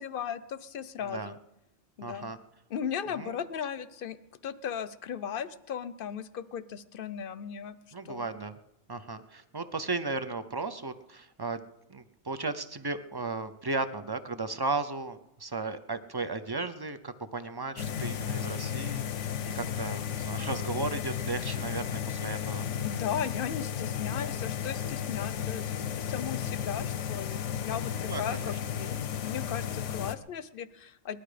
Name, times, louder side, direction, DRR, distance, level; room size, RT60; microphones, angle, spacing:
voice 1, 0.0-1.4 2.0-2.3 2.7-4.2 4.4-7.8 8.0-8.3 22.8-31.2, left 8 dB, 55° left, 15 dB, 0.8 m, -37 dB
voice 2, 1.0-1.3 2.0-2.4 3.2-3.3 7.9-8.5 8.9-11.6 11.9-22.7 27.9-28.5, right 3 dB, 30° right, 11 dB, 0.5 m, -35 dB
sound 1, 17.8-30.1, left 9 dB, 85° left, 1.1 m, -34 dB
19.5 x 11.5 x 5.0 m, 0.88 s
omnidirectional pair, 1.2 m